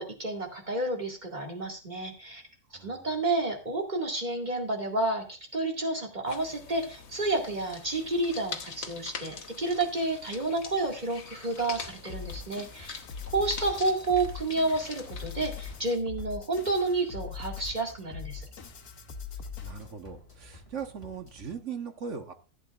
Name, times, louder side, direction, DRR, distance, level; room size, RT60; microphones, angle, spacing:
voice 1, 0.0-2.4 2.8-13.0 13.3-18.4, right 2 dB, 30° right, 1 dB, 2.2 m, -30 dB
voice 2, 2.7-3.1 19.3-22.3, right 6 dB, 55° right, 6 dB, 1.4 m, -40 dB
sound 1, 6.3-16.0, left 5 dB, 50° left, 1.3 m, -44 dB
sound 2, 11.6-21.5, left 2 dB, 20° left, 1.9 m, -52 dB
sound 3, 12.1-20.0, left 6 dB, 85° left, 1.5 m, -42 dB
15.0 x 8.2 x 2.4 m, 0.37 s
omnidirectional pair, 1.5 m